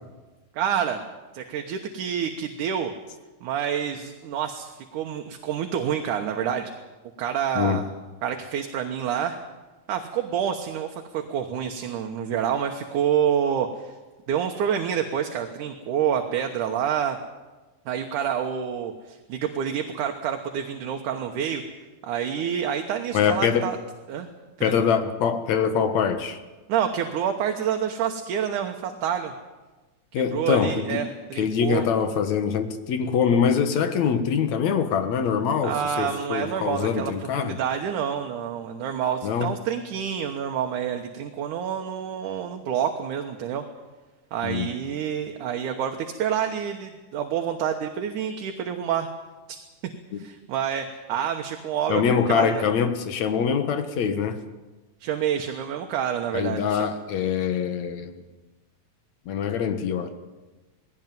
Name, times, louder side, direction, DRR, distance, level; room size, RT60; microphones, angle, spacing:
voice 1, 0.5-1.0 1.3-2.9 3.4-6.7 7.2-7.9 8.2-9.4 9.9-13.9 14.3-17.2 17.9-21.6 22.0-23.8 24.1-24.3 24.6-24.8 26.7-29.3 30.3-31.8 35.6-37.1 37.4-43.6 44.3-49.1 50.2-52.0 52.3-52.6 55.0-56.9, right 8 dB, 75° right, 4 dB, 2.6 m, -28 dB
voice 2, 23.1-23.6 24.6-26.4 30.1-31.0 31.4-37.6 39.2-39.5 44.4-44.7 50.1-50.2 51.9-54.4 56.3-58.2 59.3-60.1, left 7 dB, 65° left, 9 dB, 2.6 m, -24 dB
20.0 x 17.0 x 9.3 m, 1.2 s
omnidirectional pair, 3.7 m